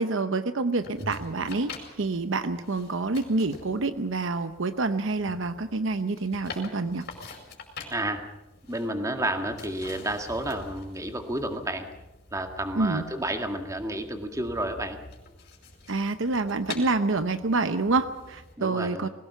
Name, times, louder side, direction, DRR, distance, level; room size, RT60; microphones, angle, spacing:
voice 1, 0.0-1.7 2.0-7.0 12.8-13.0 15.9-19.1, right 3 dB, 65° right, 11 dB, 0.8 m, -27 dB
sound 1, 0.8-18.5, left 3 dB, 50° left, 5.1 m, -46 dB
voice 2, 7.9-8.2 8.7-11.9 12.3-15.0 18.6-19.1, right 1 dB, 15° right, 5 dB, 2.0 m, -31 dB
21.0 x 18.0 x 7.1 m, 1.0 s
head